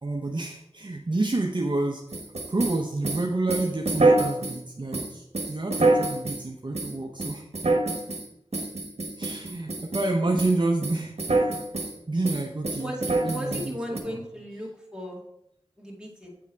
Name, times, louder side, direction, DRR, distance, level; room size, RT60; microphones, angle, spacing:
voice 1, 0.0-2.2 2.5-7.5 9.2-11.6 12.1-14.3 14.5-14.6, right 2 dB, 45° right, 1 dB, 0.7 m, -29 dB
sound 1, 2.1-4.6 4.9-6.4 6.7-6.9 7.2-8.2 8.5-10.1 10.4-10.6 10.8-11.9 12.2-14.0, right 2 dB, 65° right, 1.2 m, -26 dB
voice 2, 12.8-15.2 15.8-16.3, equal, 5° right, -2 dB, 2.0 m, -36 dB
8.4 x 3.6 x 4.4 m, 0.80 s
wide cardioid pair, 40°, 11 cm